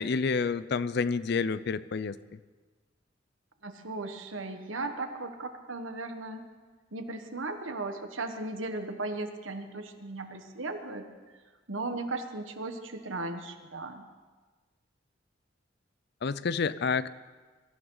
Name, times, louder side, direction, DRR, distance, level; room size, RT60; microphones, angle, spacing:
voice 1, 0.0-2.2 16.2-17.1, left 5 dB, 60° left, 16 dB, 0.5 m, -29 dB
voice 2, 3.6-6.4 6.9-11.1 11.7-14.0, right 2 dB, 85° right, 6 dB, 1.5 m, -36 dB
23.5 x 14.0 x 4.0 m, 1.3 s
head